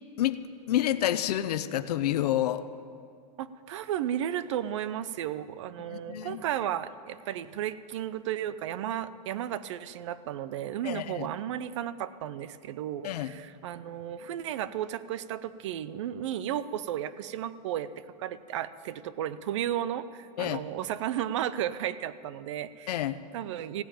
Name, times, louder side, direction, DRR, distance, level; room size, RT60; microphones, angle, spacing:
voice 1, 0.7-2.6 5.9-6.4 10.8-11.3 13.0-13.3 20.4-20.6 22.9-23.2, left 12 dB, 65° left, 13 dB, 0.7 m, -28 dB
voice 2, 3.4-23.1 23.3-23.8, right 11 dB, 45° right, 15 dB, 0.5 m, -34 dB
15.5 x 8.9 x 8.8 m, 2.3 s
supercardioid pair, 175°, 21 cm